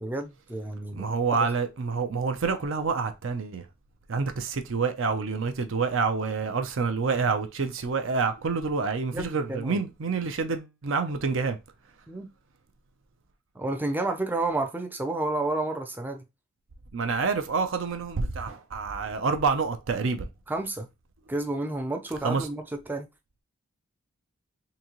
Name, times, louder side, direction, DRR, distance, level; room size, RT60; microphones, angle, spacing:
voice 1, 0.0-1.1 9.1-9.8 12.1-12.3 13.6-16.2 20.5-20.9 21.3-23.1, right 2 dB, 10° right, 0.4 m, -30 dB
voice 2, 0.9-3.6 4.1-11.6 16.9-20.3 22.2-22.5, right 4 dB, 60° right, 0.5 m, -27 dB
3.9 x 2.7 x 2.9 m
head